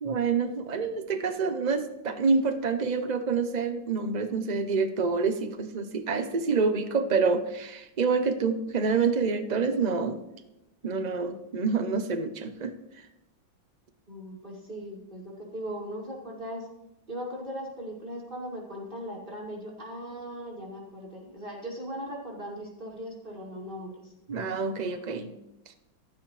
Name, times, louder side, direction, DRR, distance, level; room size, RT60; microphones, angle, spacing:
voice 1, 0.0-10.2 10.8-13.1 24.3-25.3 25.7-25.8, right 4 dB, 65° right, 8 dB, 0.4 m, -27 dB
voice 2, 14.1-16.7 17.1-24.1, equal, 25° right, -4 dB, 5.7 m, -39 dB
28.5 x 9.5 x 3.3 m, 0.92 s
omnidirectional pair, 2.2 m